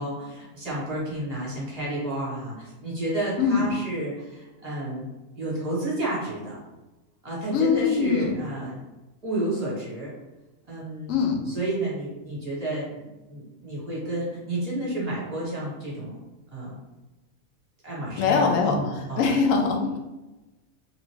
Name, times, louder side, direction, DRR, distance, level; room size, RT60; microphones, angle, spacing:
voice 1, 0.0-5.1 5.3-6.6 7.2-8.8 9.2-10.1 10.6-13.0 13.3-16.2 16.5-16.8 17.8-19.2, right 1 dB, 30° right, -6 dB, 1.1 m, -31 dB
voice 2, 7.5-8.4 11.1-11.4 18.2-20.0, left 5 dB, 75° left, 2 dB, 0.9 m, -23 dB
3.1 x 2.5 x 3.2 m, 1.0 s
omnidirectional pair, 1.5 m